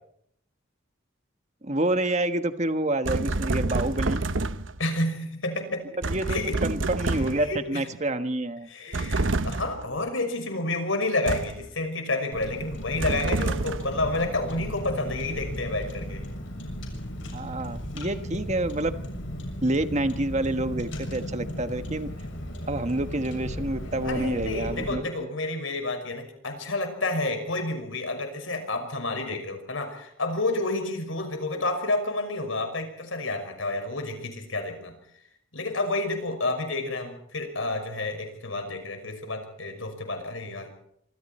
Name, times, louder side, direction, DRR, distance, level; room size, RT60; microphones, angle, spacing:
voice 1, 1.6-4.2 6.0-8.7 17.3-18.9 19.6-22.1 22.7-25.0, right 1 dB, 35° right, 9 dB, 1.4 m, -28 dB
sound 1, 3.0-4.8 6.0-7.6 8.9-9.8 11.3-11.7 13.0-14.0, right 2 dB, 70° right, 1.0 m, -28 dB
voice 2, 4.8-5.9 6.3-6.6 7.1-7.9 8.7-16.3 18.3-18.4 24.0-34.9 35.5-40.7, left 2 dB, 90° left, 6 dB, 5.7 m, -30 dB
Car, 12.3-24.9, equal, 70° left, 7.0 m, -35 dB
26.0 x 25.5 x 4.4 m, 0.72 s
head